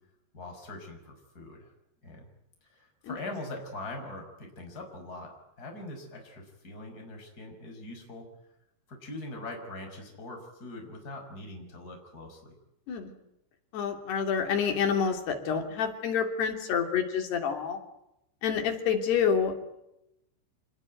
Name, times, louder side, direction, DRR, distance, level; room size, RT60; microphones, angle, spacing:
voice 1, 0.3-1.7 2.0-2.3 2.7-8.3 8.9-12.5, left 2 dB, 20° left, 2 dB, 5.9 m, -42 dB
voice 2, 13.7-17.8 18.4-19.5, left 7 dB, 60° left, 4 dB, 5.0 m, -28 dB
26.5 x 21.0 x 9.5 m, 0.84 s
omnidirectional pair, 5.6 m